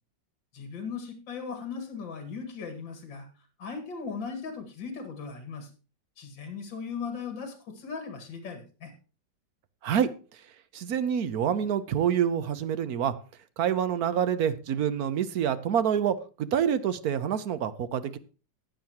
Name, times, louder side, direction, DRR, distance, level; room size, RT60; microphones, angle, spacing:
voice 1, 0.5-5.7 6.2-8.9, left 5 dB, 75° left, 6 dB, 2.7 m, -38 dB
voice 2, 10.7-13.1 13.6-18.2, right 8 dB, 60° right, 13 dB, 1.2 m, -27 dB
15.5 x 9.5 x 3.0 m, 0.34 s
omnidirectional pair, 2.1 m